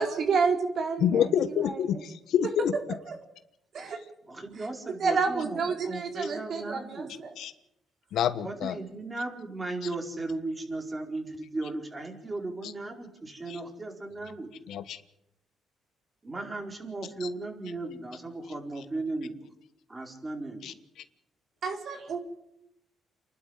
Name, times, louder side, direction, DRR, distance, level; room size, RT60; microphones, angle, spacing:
voice 1, 0.0-1.3 1.6-1.7 3.7-4.0 5.0-7.1 21.6-22.2, right 5 dB, 60° right, 3 dB, 4.5 m, -29 dB
voice 2, 1.0-2.7 7.4-7.5 8.1-8.8 13.5-13.6 14.7-15.0 17.2-17.3 20.6-20.7, left 9 dB, 80° left, 12 dB, 1.2 m, -27 dB
voice 3, 4.3-7.1 8.4-14.5 16.2-19.5 19.9-20.7, right 2 dB, 20° right, 3 dB, 4.7 m, -36 dB
29.0 x 11.5 x 8.1 m, 0.81 s
cardioid pair, 90°, 0 cm